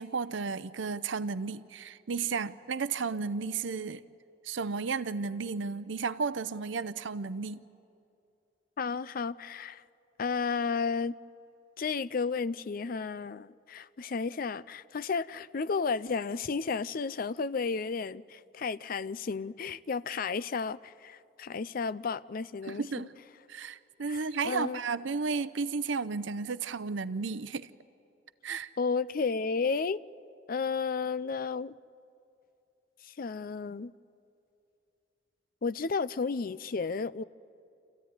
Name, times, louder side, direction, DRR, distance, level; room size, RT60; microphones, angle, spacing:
voice 1, 0.0-4.0 4.4-7.6 22.7-23.1 23.5-27.7 28.4-28.7, right 5 dB, 85° right, 0.6 m, -33 dB
voice 2, 8.8-9.8 10.2-11.1 11.8-23.0 24.1-24.8 28.5-30.0 30.5-31.8 33.0-33.9 35.6-37.2, left 5 dB, 50° left, 0.5 m, -33 dB
27.5 x 15.0 x 9.5 m
head